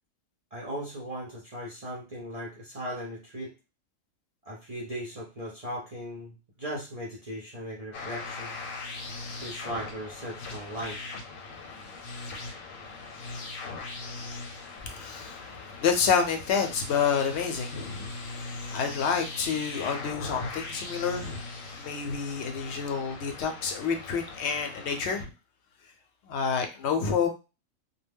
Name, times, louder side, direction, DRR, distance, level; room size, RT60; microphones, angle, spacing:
voice 1, 0.5-3.5 4.5-8.5 9.4-11.1, equal, 45° right, 0.5 m, -38 dB
sound 1, 7.9-25.2, left 3 dB, 85° left, 1.0 m, -40 dB
voice 2, 14.8-18.1 18.7-21.4 21.8-25.3 26.2-27.3, left 6 dB, 65° left, 0.7 m, -28 dB
2.2 x 2.1 x 3.4 m
omnidirectional pair, 1.4 m